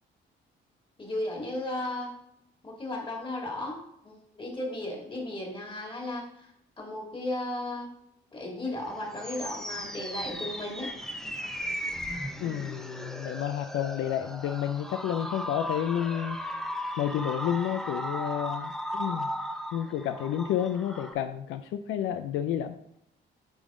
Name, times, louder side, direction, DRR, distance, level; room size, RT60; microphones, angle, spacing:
voice 1, 1.0-2.1 2.6-6.3 6.8-7.9 8.3-10.9, left 1 dB, 25° left, -1 dB, 2.4 m, -35 dB
sound 1, 8.8-21.1, equal, ahead, 0.6 m, -36 dB
voice 2, 12.4-16.4 17.0-19.3 19.7-22.7, left 10 dB, 85° left, 9 dB, 0.4 m, -30 dB
10.0 x 3.6 x 3.7 m, 0.75 s
cardioid pair, 90°, 20 cm